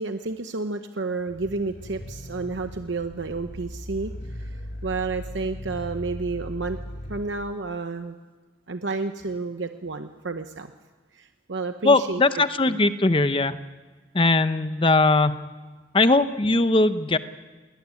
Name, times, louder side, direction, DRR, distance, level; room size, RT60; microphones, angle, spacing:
voice 1, 0.0-8.2 8.7-10.7 11.1-12.8, right 3 dB, 75° right, 7 dB, 0.9 m, -31 dB
sound 1, 1.2-7.3, equal, 60° left, 2.6 m, -38 dB
voice 2, 11.8-13.6 14.1-15.4 15.9-17.2, left 2 dB, 30° left, 12 dB, 0.8 m, -20 dB
20.5 x 19.0 x 9.7 m, 1.3 s
head